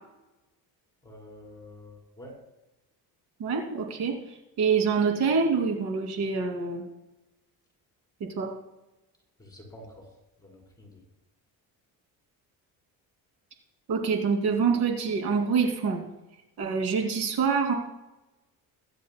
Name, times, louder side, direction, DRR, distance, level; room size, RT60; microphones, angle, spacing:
voice 1, 1.0-2.3 9.4-10.1 10.4-11.0, left 1 dB, 10° left, -1 dB, 4.0 m, -48 dB
voice 2, 3.4-6.8 8.2-8.5 13.9-16.0 16.6-17.7, right 5 dB, 90° right, 2 dB, 2.6 m, -26 dB
21.0 x 11.0 x 2.2 m, 0.97 s
cardioid pair, 140°, 38 cm